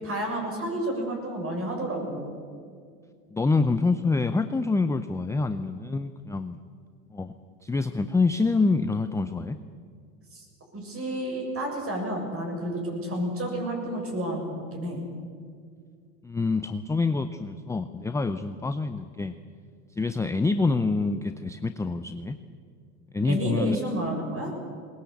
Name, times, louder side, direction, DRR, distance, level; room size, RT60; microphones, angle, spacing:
voice 1, 0.0-2.4 10.3-10.5 10.7-15.0 23.2-24.5, right 1 dB, 25° right, 1 dB, 7.2 m, -30 dB
voice 2, 3.3-6.6 7.1-7.3 7.6-9.6 16.2-19.4 20.0-22.4 23.1-23.8, left 3 dB, 5° left, 10 dB, 0.5 m, -26 dB
20.5 x 20.5 x 8.3 m, 2.2 s
hypercardioid pair, 100°, 48 cm